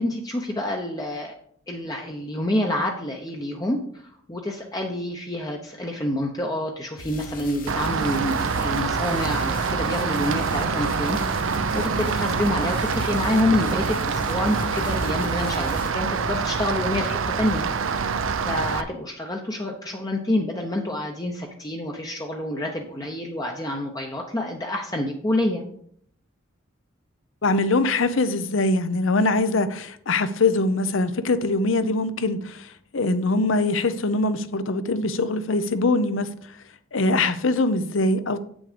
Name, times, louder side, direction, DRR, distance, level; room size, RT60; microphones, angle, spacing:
voice 1, 0.0-1.3 1.7-11.4 11.7-25.6, left 1 dB, 20° left, 0.7 m, -28 dB
sound 1, 7.0-15.9, left 3 dB, 45° left, 1.0 m, -39 dB
Rain, 7.7-18.8, right 5 dB, 75° right, 0.6 m, -25 dB
voice 2, 27.4-36.3 36.9-38.4, left 2 dB, 70° left, 0.7 m, -23 dB
8.4 x 6.3 x 5.1 m
head